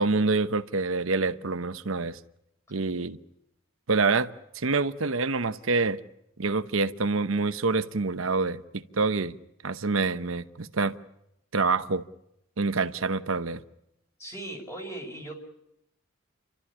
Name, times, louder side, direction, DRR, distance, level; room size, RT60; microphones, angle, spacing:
voice 1, 0.0-2.2 2.7-3.2 3.9-4.3 4.5-6.0 6.4-9.4 9.6-10.9 11.5-12.0 12.6-13.6, right 3 dB, 70° right, 12 dB, 0.9 m, -26 dB
voice 2, 14.2-15.3, right 1 dB, 15° left, 1 dB, 5.5 m, -38 dB
30.0 x 13.0 x 9.9 m, 0.82 s
head